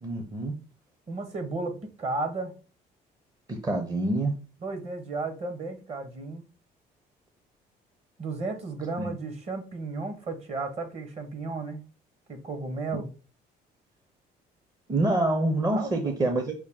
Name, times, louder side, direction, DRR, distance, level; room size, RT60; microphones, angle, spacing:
voice 1, 0.0-0.5 3.5-4.3 9.0-9.1 14.9-16.5, right 2 dB, 20° right, 4 dB, 0.7 m, -26 dB
voice 2, 1.1-2.5 4.6-6.4 8.2-11.8 12.3-13.1 15.7-16.1, right 3 dB, 40° right, 6 dB, 1.1 m, -34 dB
6.1 x 2.2 x 3.6 m, 0.35 s
cardioid pair, 110°, 17 cm